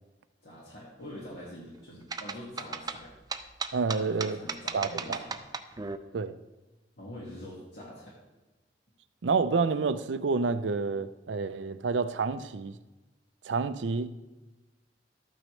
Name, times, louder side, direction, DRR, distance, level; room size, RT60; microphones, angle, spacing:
voice 1, 0.4-3.1 4.0-5.4 7.0-8.2, left 1 dB, 65° left, 2.0 m, -44 dB
sound 1, 2.1-6.0, right 4 dB, 20° right, 0.5 m, -36 dB
voice 2, 3.7-4.4 4.7-5.2 6.1-6.3 9.2-12.7 13.4-14.1, right 4 dB, 85° right, 0.5 m, -29 dB
13.0 x 9.1 x 3.2 m
head